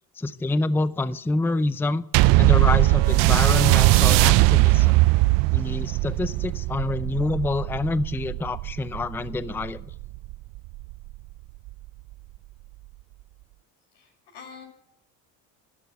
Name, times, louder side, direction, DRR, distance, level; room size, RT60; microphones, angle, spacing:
voice 1, 0.2-2.1 2.3-5.0 5.5-9.8, left 2 dB, 5° left, 16 dB, 0.5 m, -27 dB
sound 1, 2.1-10.9 11.7-11.8, right 20 dB, 65° right, 0.6 m, -20 dB
voice 2, 13.9-14.6, left 6 dB, 60° left, -5 dB, 6.1 m, -45 dB
12.0 x 12.0 x 9.5 m, 0.77 s
supercardioid pair, 80°, 46 cm